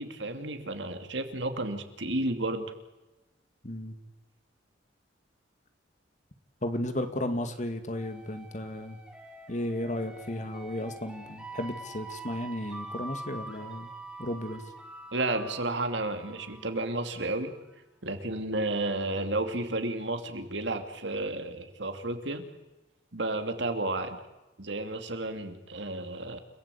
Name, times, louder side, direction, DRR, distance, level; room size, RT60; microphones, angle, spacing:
voice 1, 0.0-2.7 15.1-17.5 18.0-22.4 23.1-24.2 24.6-26.4, right 2 dB, 70° right, 6 dB, 2.7 m, -32 dB
voice 2, 3.6-4.0 6.6-9.0 9.5-13.9 14.2-14.6, left 1 dB, 40° left, 8 dB, 2.2 m, -34 dB
sound 1, 7.9-17.6, right 2 dB, 5° right, 3.5 m, -45 dB
30.0 x 18.0 x 8.6 m, 1.1 s
head